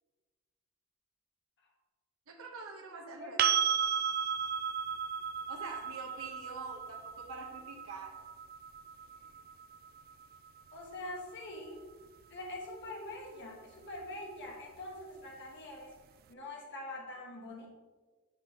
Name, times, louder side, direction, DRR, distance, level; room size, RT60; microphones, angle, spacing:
voice 1, 2.3-3.6 5.5-8.2, right 4 dB, 75° right, 1 dB, 1.0 m, -46 dB
sound 1, 3.4-11.2 14.0-14.1, right 8 dB, 45° right, 0.3 m, -35 dB
voice 2, 10.7-11.8 12.3-15.9 16.3-17.7, left 1 dB, 55° left, -1 dB, 1.2 m, -44 dB
10.0 x 5.3 x 2.8 m, 1.4 s
head